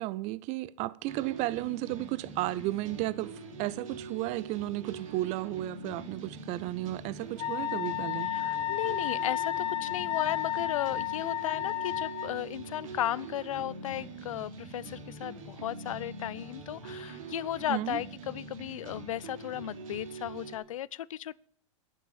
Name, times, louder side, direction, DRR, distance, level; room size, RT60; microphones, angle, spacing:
voice 1, 0.0-3.3 3.6-8.3 17.7-18.0, right 17 dB, 45° right, 0.5 m, -33 dB
sound 1, 1.0-20.6, right 3 dB, 80° right, 3.3 m, -44 dB
Wind instrument woodwind instrument, 7.4-12.3, left 12 dB, 30° left, 0.9 m, -32 dB
voice 2, 8.3-21.4, left 12 dB, 85° left, 0.5 m, -35 dB
10.5 x 8.9 x 7.2 m
hypercardioid pair, 120°, 17 cm